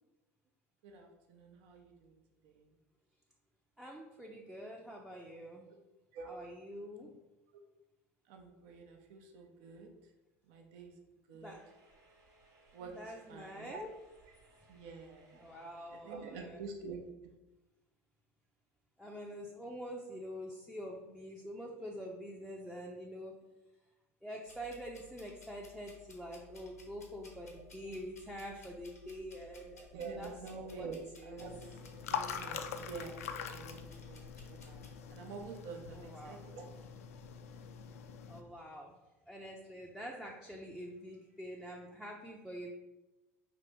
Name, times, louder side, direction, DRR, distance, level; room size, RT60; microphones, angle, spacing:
voice 1, 0.8-2.7 6.1-6.3 8.3-9.9 10.5-10.9 11.3-11.5 12.7-12.9 13.3-13.8 14.7-15.5 15.9-17.0 29.8-33.2 33.4-34.8 35.1-36.6 38.0-38.1, right 4 dB, 60° right, 3 dB, 0.6 m, -47 dB
voice 2, 3.8-5.7 6.2-7.1 11.4-11.6 12.8-13.9 15.3-16.6 19.0-23.3 24.2-30.3 30.7-30.9 31.2-31.5 35.9-36.4 38.3-38.9 39.3-42.7, equal, 5° right, -2 dB, 0.5 m, -46 dB
sound 1, 11.5-16.5, right 2 dB, 40° right, 1.1 m, -66 dB
sound 2, 24.5-34.9, left 4 dB, 90° left, 0.8 m, -58 dB
sound 3, 31.4-38.4, left 7 dB, 70° left, 0.4 m, -44 dB
4.9 x 2.8 x 3.4 m, 1.0 s
figure-of-eight pair, 70°, 8 cm